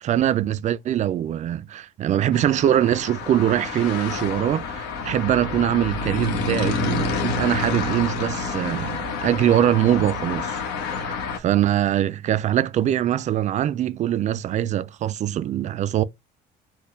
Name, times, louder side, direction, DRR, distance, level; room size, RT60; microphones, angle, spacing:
voice 1, 0.0-10.6 10.9-16.0, right 11 dB, 45° right, 0.4 m, -23 dB
sound 1, 2.3-11.4, left 4 dB, 85° left, 1.1 m, -28 dB
4.4 x 2.2 x 3.2 m
cardioid pair, 110°, 17 cm